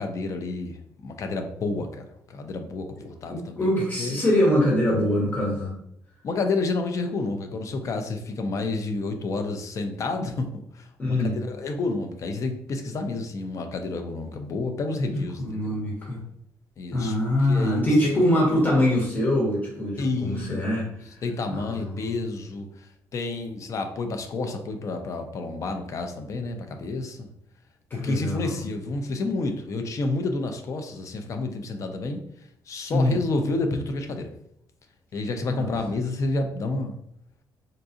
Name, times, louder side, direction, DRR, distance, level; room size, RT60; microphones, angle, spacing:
voice 1, 0.0-3.7 4.0-4.2 6.2-15.8 16.8-17.2 17.4-18.3 20.0-20.9 21.2-22.9 23.1-27.3 27.9-32.2 32.7-34.3 35.1-37.0, left 3 dB, 50° left, 6 dB, 0.6 m, -30 dB
voice 2, 3.3-5.7 11.0-11.4 15.1-16.2 16.9-21.2 21.5-22.0 28.0-28.6 32.9-33.1 35.5-35.7, left 1 dB, 25° left, -4 dB, 1.4 m, -24 dB
3.9 x 2.4 x 2.6 m, 0.72 s
cardioid pair, 90°, 7 cm